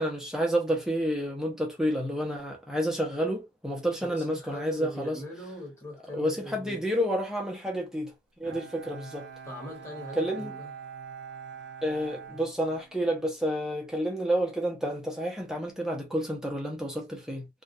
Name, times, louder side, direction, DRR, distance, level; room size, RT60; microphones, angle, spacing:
voice 1, 0.0-5.2 6.1-8.1 8.4-9.3 10.2-10.5 11.8-17.5, equal, 5° right, 0.5 m, -30 dB
voice 2, 4.0-6.8 9.4-10.7, left 1 dB, 15° left, 1.2 m, -41 dB
Bowed string instrument, 8.4-13.3, right 7 dB, 80° right, 0.5 m, -44 dB
2.4 x 2.2 x 2.5 m
head